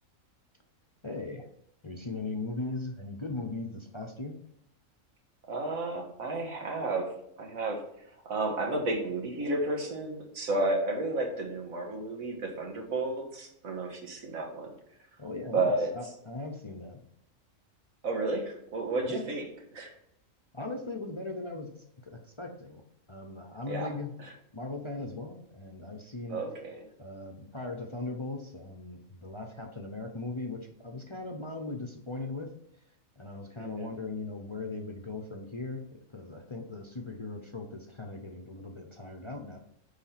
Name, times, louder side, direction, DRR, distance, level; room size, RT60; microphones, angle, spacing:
voice 1, 1.0-1.5 1.8-4.4 15.2-17.0 19.0-19.3 20.5-21.7 22.0-22.8 23.1-24.1 24.5-26.4 27.0-32.5 33.2-39.6, left 3 dB, 25° left, 2 dB, 0.7 m, -39 dB
voice 2, 5.5-7.1 7.4-7.8 8.2-14.7 15.5-15.9 18.0-19.5 19.7-19.9 23.7-23.9 24.2-24.3 26.3-26.8 33.6-33.9, right 2 dB, 85° right, 2 dB, 2.0 m, -32 dB
6.9 x 4.9 x 5.8 m, 0.76 s
omnidirectional pair, 1.4 m